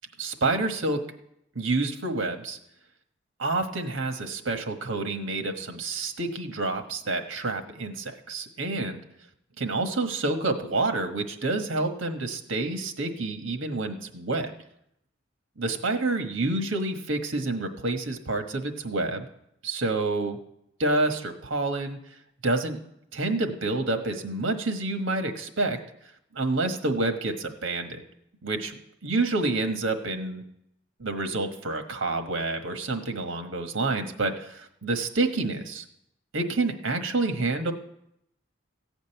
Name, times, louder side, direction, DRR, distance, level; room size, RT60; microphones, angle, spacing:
voice 1, 0.2-1.0 1.5-2.6 3.4-9.0 9.6-14.5 15.6-19.3 19.6-20.4 20.8-22.0 22.4-22.8 23.1-25.8 26.3-28.0 28.4-28.8 29.0-30.4 31.0-35.8 36.3-37.7, right 2 dB, 85° right, 6 dB, 1.3 m, -28 dB
15.0 x 5.3 x 9.1 m, 0.77 s
head